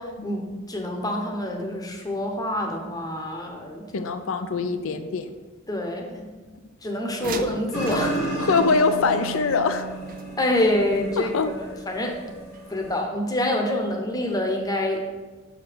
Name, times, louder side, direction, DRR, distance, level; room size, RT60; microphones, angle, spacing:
voice 1, 0.0-4.0 5.7-6.3 6.8-8.5 10.4-11.3 11.9-12.2 12.7-15.1, left 1 dB, 15° left, 2 dB, 0.9 m, -26 dB
voice 2, 3.9-5.3 7.3-7.5 8.4-9.9 11.2-11.5, left 4 dB, 70° left, 9 dB, 0.5 m, -23 dB
sound 1, 7.2-10.6 12.5-12.6 13.0-13.1, right 5 dB, 40° right, 0.4 m, -39 dB
sound 2, 7.7-13.0, right 2 dB, 85° left, 2.1 m, -33 dB
6.4 x 5.0 x 5.0 m, 1.3 s
head